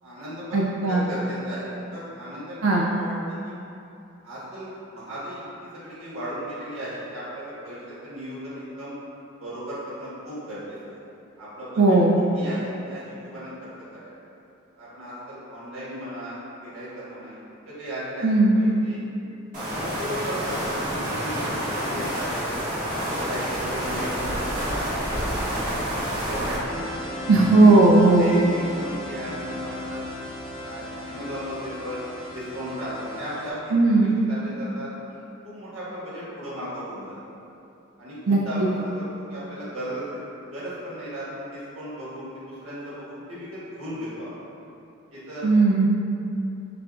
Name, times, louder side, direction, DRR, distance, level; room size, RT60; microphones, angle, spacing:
voice 1, 0.0-3.5 4.2-9.0 9.4-11.0 11.4-12.0 12.3-13.7 14.0-14.1 14.8-16.4 16.6-17.4 17.6-19.0 19.7-22.5 23.0-25.7 26.2-26.8 27.3-27.7 28.2-30.1 30.6-32.0 32.3-37.2 38.0-40.2 40.5-44.3 45.1-45.5, equal, 85° right, -10 dB, 1.5 m, -36 dB
voice 2, 0.5-1.0 2.6-2.9 11.8-12.2 18.2-18.6 27.3-28.3 33.7-34.1 38.3-38.4 45.4-45.9, right 2 dB, 65° right, -3 dB, 0.4 m, -17 dB
sound 1, 19.5-26.6, equal, 40° right, 1.3 m, -28 dB
sound 2, 26.6-33.5, left 1 dB, 75° left, 1.2 m, -36 dB
6.7 x 2.4 x 2.4 m, 2.8 s
head